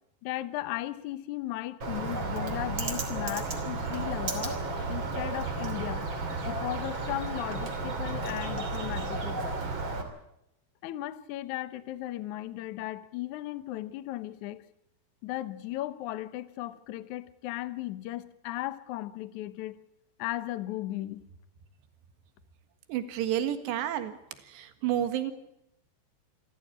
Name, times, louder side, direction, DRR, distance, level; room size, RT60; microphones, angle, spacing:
voice 1, 0.2-4.6 4.9-6.1 6.4-9.6 10.8-14.6 15.2-19.8 20.2-21.2, left 15 dB, 90° left, 1.7 m, -36 dB
Bird, 1.8-10.0, right 3 dB, 35° right, 3.0 m, -33 dB
voice 2, 22.9-24.1 24.5-25.3, right 11 dB, 85° right, 3.8 m, -30 dB
26.0 x 15.0 x 8.6 m
omnidirectional pair, 4.8 m